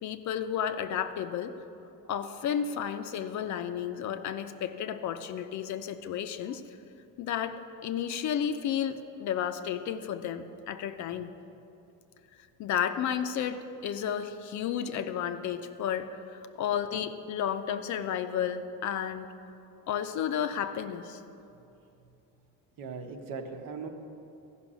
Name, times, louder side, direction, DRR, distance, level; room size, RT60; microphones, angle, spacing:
voice 1, 0.0-1.5 2.1-6.6 7.2-11.3 12.6-19.3 19.9-21.2, left 9 dB, 50° left, 10 dB, 0.6 m, -32 dB
voice 2, 22.8-23.9, right 5 dB, 65° right, 5 dB, 1.1 m, -39 dB
14.0 x 5.6 x 6.2 m, 2.8 s
cardioid pair, 130°, 37 cm